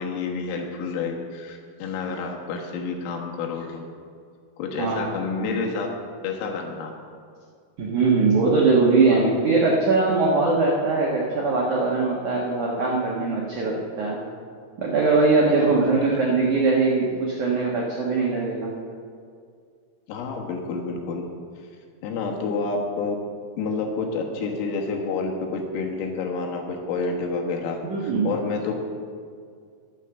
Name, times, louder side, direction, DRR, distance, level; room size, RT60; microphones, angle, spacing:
voice 1, 0.0-3.8 4.6-5.9 6.2-6.9 15.5-16.0 20.1-21.2 22.0-23.2 23.6-28.7, left 4 dB, 80° left, 1 dB, 4.1 m, -29 dB
voice 2, 4.8-5.1 7.8-14.2 14.8-18.7 27.9-28.3, right 3 dB, 75° right, -3 dB, 1.7 m, -21 dB
11.5 x 9.2 x 7.0 m, 2.2 s
omnidirectional pair, 5.9 m